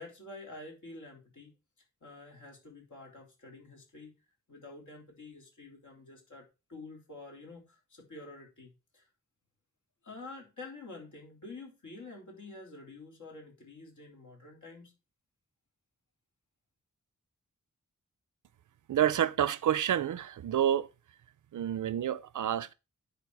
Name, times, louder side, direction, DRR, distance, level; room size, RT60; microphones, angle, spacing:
voice 1, 0.0-1.5 2.0-4.1 4.5-9.1 10.0-14.9, left 3 dB, 80° left, 3.3 m, -48 dB
voice 2, 18.9-20.9 21.5-22.7, right 10 dB, 80° right, 0.6 m, -28 dB
10.5 x 4.4 x 4.7 m
wide cardioid pair, 155°, 30 cm